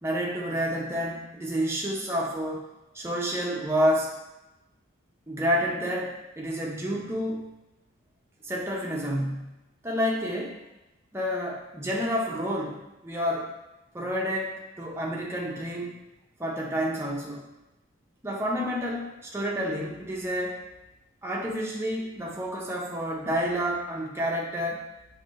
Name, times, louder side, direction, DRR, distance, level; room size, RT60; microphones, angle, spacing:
voice 1, 0.0-2.7 2.9-4.1 5.3-7.5 8.4-9.5 9.8-10.6 11.1-13.5 13.9-16.0 16.4-17.5 18.2-20.6 21.2-24.8, equal, 10° right, -3 dB, 0.5 m, -29 dB
5.7 x 2.6 x 2.4 m, 0.99 s
head